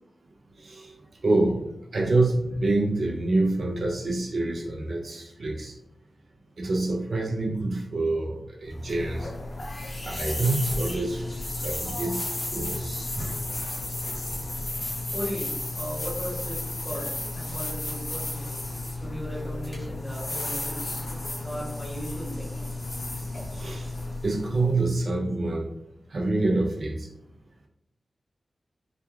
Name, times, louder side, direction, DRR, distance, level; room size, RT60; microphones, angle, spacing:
voice 1, 0.6-0.9 1.2-5.7 6.6-9.3 10.0-11.2 11.6-13.3 23.5-23.9 24.2-25.7 26.1-27.1, right 2 dB, 55° right, 0 dB, 0.4 m, -27 dB
sound 1, 8.7-24.9, left 2 dB, 55° left, 0.7 m, -33 dB
voice 2, 15.1-18.5 19.0-21.1 21.4-22.5, equal, 10° left, -5 dB, 0.9 m, -37 dB
2.3 x 2.2 x 3.1 m, 0.82 s
wide cardioid pair, 140°, 0 cm